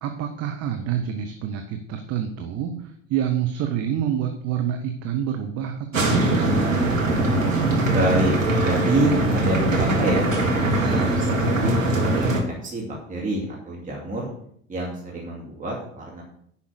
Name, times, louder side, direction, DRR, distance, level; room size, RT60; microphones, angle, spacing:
voice 1, 0.0-6.5, right 9 dB, 40° right, 5 dB, 1.1 m, -27 dB
sound 1, 5.9-12.4, right 2 dB, 85° right, 1.9 m, -21 dB
voice 2, 7.9-10.5 10.9-11.8 12.2-12.3 12.6-14.3 14.7-16.2, right 1 dB, 20° right, -3 dB, 2.7 m, -27 dB
10.0 x 5.7 x 6.5 m, 0.67 s
figure-of-eight pair, 70°, 38 cm